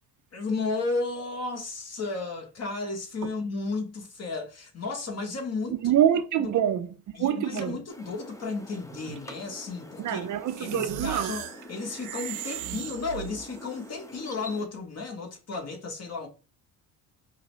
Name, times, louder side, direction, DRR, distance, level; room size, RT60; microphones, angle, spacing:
voice 1, 0.3-5.9 6.4-6.5 7.2-10.3 10.6-16.3, left 3 dB, 40° left, 1.3 m, -33 dB
voice 2, 5.7-7.8 9.1-9.2 10.0-11.4, right 10 dB, 50° right, 0.6 m, -26 dB
sound 1, 7.9-14.7, left 1 dB, 10° left, 0.7 m, -46 dB
sound 2, 10.5-13.7, right 11 dB, 85° right, 0.8 m, -38 dB
5.3 x 2.1 x 3.1 m
supercardioid pair, 70°, 40 cm